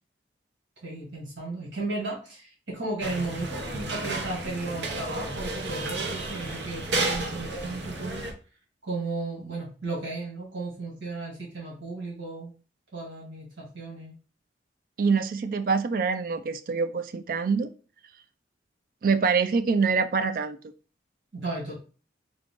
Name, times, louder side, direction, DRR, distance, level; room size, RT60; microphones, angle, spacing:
voice 1, 0.8-8.3 8.8-12.5 12.9-14.1 21.3-21.7, right 3 dB, 90° right, 2.0 m, -35 dB
sound 1, 3.0-8.3, right 2 dB, 70° right, 0.7 m, -32 dB
voice 2, 15.0-17.7 19.0-20.6, right 5 dB, 50° right, 0.3 m, -25 dB
3.8 x 2.5 x 3.6 m
head